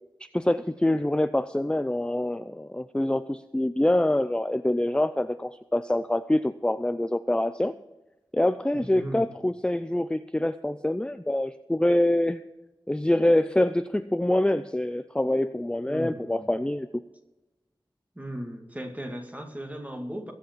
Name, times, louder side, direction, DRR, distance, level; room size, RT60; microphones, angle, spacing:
voice 1, 0.2-7.7 8.3-12.4 12.9-16.9, left 1 dB, 10° left, 12 dB, 0.4 m, -25 dB
voice 2, 8.7-9.3 15.9-16.5 18.2-20.3, equal, 15° right, 4 dB, 2.2 m, -37 dB
21.5 x 8.1 x 4.6 m, 1.0 s
wide cardioid pair, 60°, 9 cm